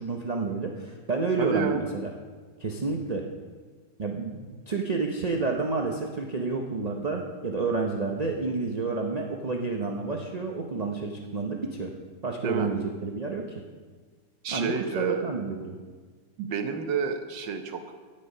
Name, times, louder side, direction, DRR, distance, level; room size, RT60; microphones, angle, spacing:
voice 1, 0.0-2.1 2.6-3.2 4.0-11.9 12.2-13.6 14.5-15.8, right 4 dB, 45° right, 1 dB, 0.5 m, -30 dB
voice 2, 1.4-1.8 12.4-12.7 14.4-15.3 16.4-17.9, right 6 dB, 85° right, 7 dB, 1.7 m, -29 dB
12.0 x 9.9 x 5.5 m, 1.5 s
omnidirectional pair, 1.9 m